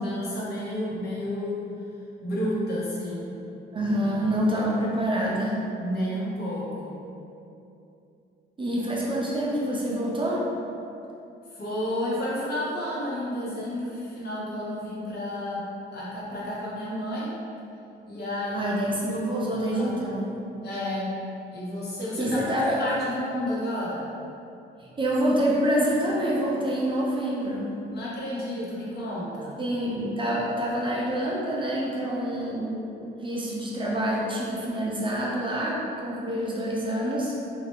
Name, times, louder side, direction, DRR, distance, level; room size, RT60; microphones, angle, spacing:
voice 1, 0.0-1.6 2.2-3.4 5.8-7.0 11.5-17.3 18.1-18.7 19.1-20.0 20.6-21.1 21.5-22.4 22.8-24.1 27.9-29.6, left 1 dB, 55° left, -7 dB, 1.0 m, -31 dB
voice 2, 3.7-5.6 8.6-10.5 18.5-20.3 22.2-22.8 24.8-27.7 29.6-37.3, right 1 dB, 25° right, -5 dB, 0.5 m, -27 dB
2.6 x 2.3 x 3.5 m, 2.8 s
cardioid pair, 90°, 20 cm